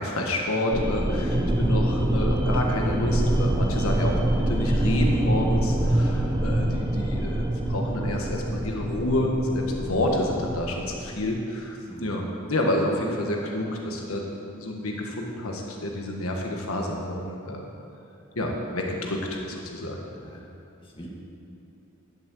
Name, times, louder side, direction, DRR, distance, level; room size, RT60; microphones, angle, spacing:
voice 1, 0.0-4.2 4.5-14.2 14.6-17.7 18.3-20.0, left 1 dB, 80° left, 0 dB, 1.4 m, -29 dB
sound 1, 0.7-11.2, right 1 dB, 20° right, 0.7 m, -25 dB
voice 2, 11.9-12.2 20.2-20.4 20.8-21.1, equal, 25° left, -3 dB, 2.0 m, -42 dB
11.0 x 7.5 x 7.6 m, 2.8 s
head